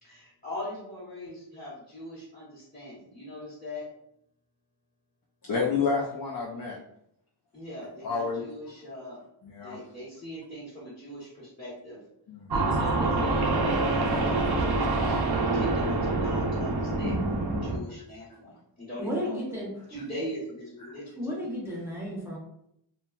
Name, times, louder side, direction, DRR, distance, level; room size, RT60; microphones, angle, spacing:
voice 1, 0.0-3.9 7.5-9.2 9.6-12.0 12.5-19.4 19.9-21.4, left 1 dB, 20° left, -11 dB, 1.0 m, -40 dB
voice 2, 5.4-6.8 8.0-8.4 9.4-9.8 12.3-12.8 14.1-14.2 20.9-21.0, left 5 dB, 50° left, -2 dB, 0.5 m, -30 dB
sound 1, 12.5-17.8, right 2 dB, 55° right, 0.5 m, -26 dB
voice 3, 19.0-19.7 21.2-22.4, equal, 5° right, -3 dB, 0.6 m, -33 dB
2.8 x 2.2 x 2.3 m, 0.75 s
wide cardioid pair, 65°, 47 cm